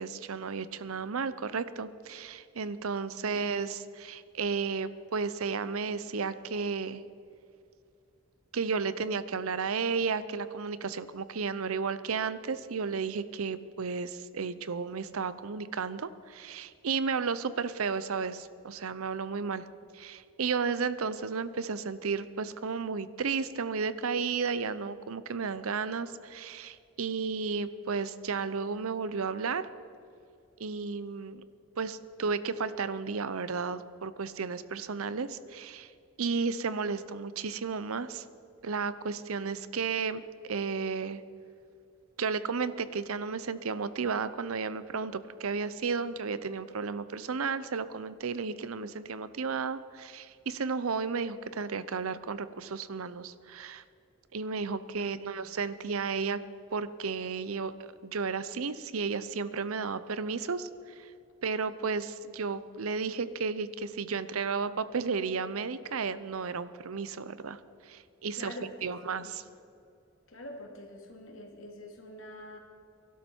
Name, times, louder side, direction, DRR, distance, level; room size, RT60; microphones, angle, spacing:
voice 1, 0.0-7.0 8.5-19.6 19.9-29.6 30.6-31.4 31.8-35.9 36.2-38.2 38.6-41.2 42.2-53.8 54.3-56.4 56.7-57.7 58.0-61.1 61.4-68.5 68.8-69.4, right 5 dB, 85° right, 14 dB, 0.7 m, -33 dB
voice 2, 55.0-55.5 68.4-69.3 70.3-72.6, left 1 dB, 70° left, 2 dB, 2.5 m, -46 dB
23.0 x 12.0 x 4.5 m, 2.5 s
head